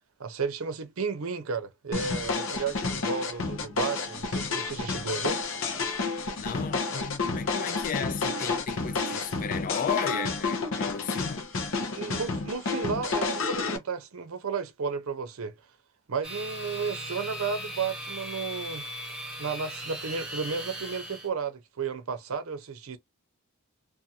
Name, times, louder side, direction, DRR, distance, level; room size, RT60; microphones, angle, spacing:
voice 1, 0.2-5.4 12.0-15.5 16.1-18.8 19.4-23.0, right 5 dB, 70° right, 0.6 m, -33 dB
sound 1, 1.9-13.8, left 4 dB, 60° left, 0.7 m, -30 dB
voice 2, 6.4-11.5, left 7 dB, 40° left, 0.3 m, -34 dB
sound 2, 16.2-21.3, equal, 5° right, 0.9 m, -38 dB
2.5 x 2.3 x 2.8 m
head